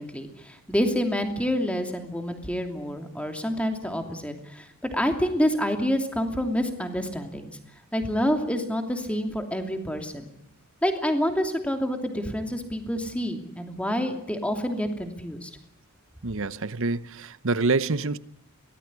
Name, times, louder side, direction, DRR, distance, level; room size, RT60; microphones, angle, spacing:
voice 1, 0.0-7.6 7.9-10.3 10.8-15.5, equal, 5° left, 2.8 m, -28 dB
voice 2, 16.2-18.2, right 3 dB, 65° right, 0.9 m, -26 dB
23.5 x 18.5 x 9.8 m
head